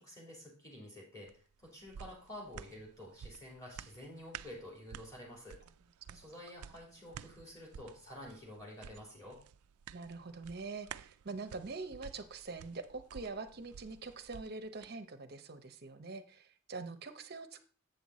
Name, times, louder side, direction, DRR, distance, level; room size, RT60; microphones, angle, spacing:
voice 1, 0.0-5.6 6.1-9.4, left 1 dB, 15° left, -3 dB, 3.0 m, -50 dB
sound 1, 1.3-14.9 15.3-15.4, right 8 dB, 90° right, 0.3 m, -52 dB
voice 2, 9.9-17.6, right 3 dB, 45° right, 9 dB, 0.7 m, -44 dB
7.9 x 6.5 x 4.1 m, 0.40 s
head